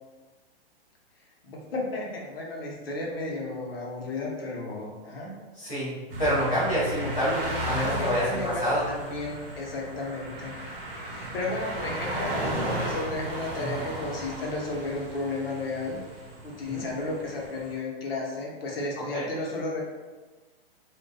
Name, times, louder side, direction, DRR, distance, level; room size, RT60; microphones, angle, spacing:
voice 1, 1.4-5.4 7.8-10.6 11.1-16.0 16.4-19.8, left 2 dB, 70° left, -1 dB, 0.7 m, -33 dB
voice 2, 5.5-5.9 6.2-8.8 13.6-13.8 16.6-16.8 19.1-19.2, equal, 10° left, -16 dB, 0.3 m, -27 dB
sound 1, 6.1-17.7, right 1 dB, 65° right, 0.7 m, -35 dB
2.2 x 2.2 x 2.4 m, 1.2 s
hypercardioid pair, 175°, 31 cm